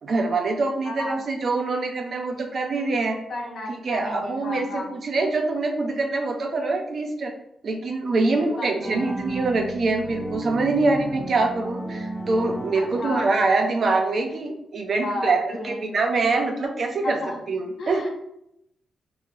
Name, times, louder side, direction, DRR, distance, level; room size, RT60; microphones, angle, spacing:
voice 1, 0.0-3.2 3.8-7.3 7.6-17.2 17.5-18.0, right 3 dB, 60° right, 3 dB, 0.6 m, -24 dB
voice 2, 0.8-1.2 3.3-4.9 8.2-9.2 12.7-13.4 15.0-15.9 17.0-17.4 17.8-18.1, left 1 dB, 75° left, -2 dB, 0.8 m, -33 dB
sound 1, 8.8-13.7, right 2 dB, 20° right, 0.7 m, -34 dB
3.9 x 2.2 x 2.9 m, 0.79 s
cardioid pair, 70°, 0 cm